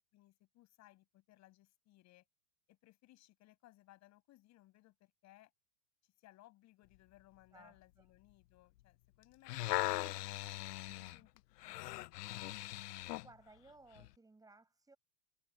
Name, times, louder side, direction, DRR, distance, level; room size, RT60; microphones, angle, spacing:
voice 1, 0.1-2.2 2.7-5.5 6.0-11.3 11.6-12.7, left 16 dB, 35° left, 8.0 m, -65 dB
voice 2, 7.5-8.1 10.8-11.3 12.8-15.0, right 3 dB, 10° right, 7.0 m, -62 dB
sound 1, 9.2-13.3 14.0-14.1, left 17 dB, 90° left, 0.7 m, -40 dB
supercardioid pair, 145°, 47 cm